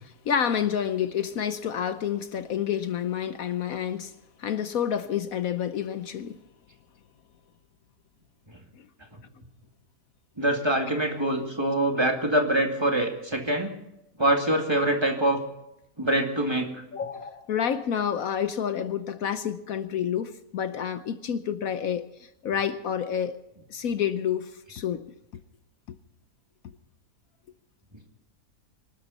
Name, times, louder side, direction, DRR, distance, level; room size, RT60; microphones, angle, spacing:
voice 1, 0.0-4.1 4.4-6.4 16.9-23.4 23.7-25.0 25.9-26.0, left 8 dB, 70° left, 11 dB, 1.2 m, -29 dB
voice 2, 10.4-13.7 14.2-15.4 16.0-16.8, right 1 dB, 15° right, 2 dB, 2.3 m, -24 dB
25.5 x 12.5 x 4.1 m, 0.91 s
omnidirectional pair, 1.6 m